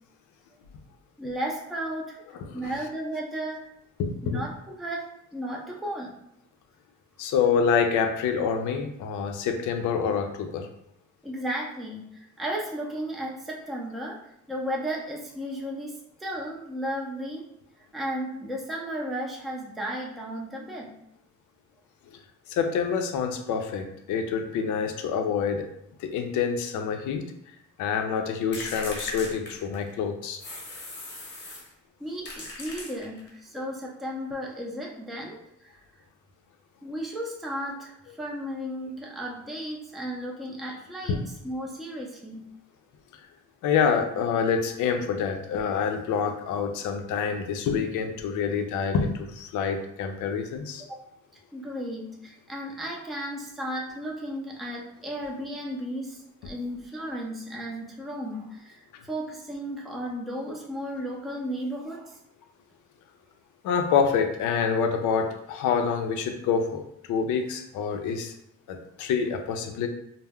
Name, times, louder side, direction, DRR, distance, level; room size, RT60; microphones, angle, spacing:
voice 1, 1.2-2.2 2.5-3.7 4.2-6.2 11.2-14.2 14.5-17.5 17.9-20.9 32.0-35.8 36.8-42.5 50.9-51.0 51.5-62.2, equal, ahead, -2 dB, 0.4 m, -34 dB
voice 2, 2.4-2.7 4.0-4.4 7.2-10.7 22.5-25.7 26.0-27.2 27.8-30.4 41.0-41.2 43.6-50.8 63.6-68.3 68.7-69.9, left 6 dB, 80° left, 5 dB, 0.5 m, -27 dB
sound 1, 28.5-30.0 30.4-31.7 32.2-33.4, left 2 dB, 35° left, 0.9 m, -38 dB
2.1 x 2.0 x 3.5 m, 0.76 s
cardioid pair, 90°, 30 cm